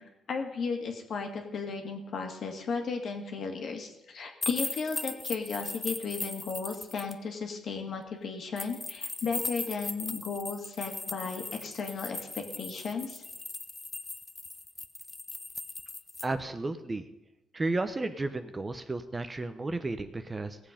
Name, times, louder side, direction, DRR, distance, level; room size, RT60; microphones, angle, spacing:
voice 1, 0.0-13.2, left 5 dB, 60° left, 3 dB, 2.0 m, -35 dB
sound 1, 4.4-7.1 8.6-16.2, left 3 dB, 20° left, 0.7 m, -38 dB
voice 2, 16.2-17.0 17.5-20.6, right 2 dB, 25° right, 9 dB, 0.9 m, -33 dB
18.0 x 7.6 x 5.2 m, 0.95 s
cardioid pair, 90°, 0 cm